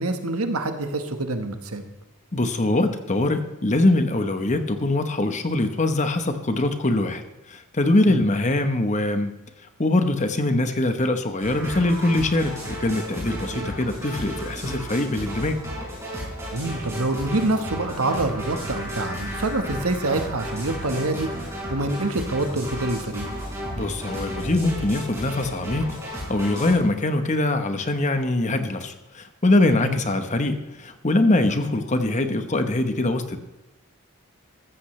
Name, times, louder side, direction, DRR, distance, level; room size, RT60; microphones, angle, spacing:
voice 1, 0.0-1.8 8.1-8.2 13.5-13.7 16.5-21.3 21.7-23.3 29.8-30.0, right 2 dB, 75° right, 7 dB, 1.3 m, -26 dB
voice 2, 2.3-7.2 7.5-9.3 9.8-15.6 23.8-26.0 26.3-33.4, left 2 dB, 30° left, 8 dB, 1.0 m, -23 dB
sound 1, 11.4-26.7, equal, 15° right, 5.4 m, -33 dB
15.0 x 14.0 x 3.2 m, 1.0 s
head